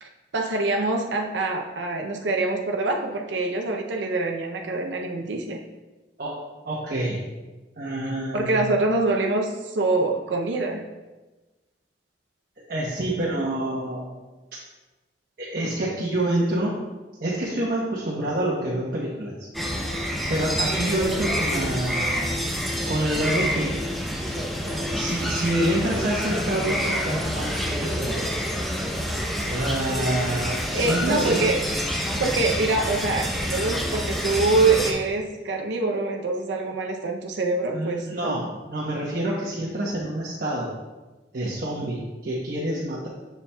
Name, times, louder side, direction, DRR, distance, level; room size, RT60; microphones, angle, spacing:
voice 1, 0.0-5.6 8.3-10.8 30.7-31.6 32.2-38.4, right 3 dB, 70° right, 2 dB, 0.6 m, -25 dB
voice 2, 6.6-7.2 7.8-8.6 12.7-14.0 15.4-16.8 17.2-19.5 20.3-22.3 22.9-23.8 24.9-28.3 29.5-31.4 37.7-40.7 41.3-43.1, right 1 dB, 55° right, -5 dB, 1.0 m, -27 dB
sound 1, 19.5-34.9, equal, ahead, 0.7 m, -27 dB
7.0 x 7.0 x 2.3 m, 1.2 s
head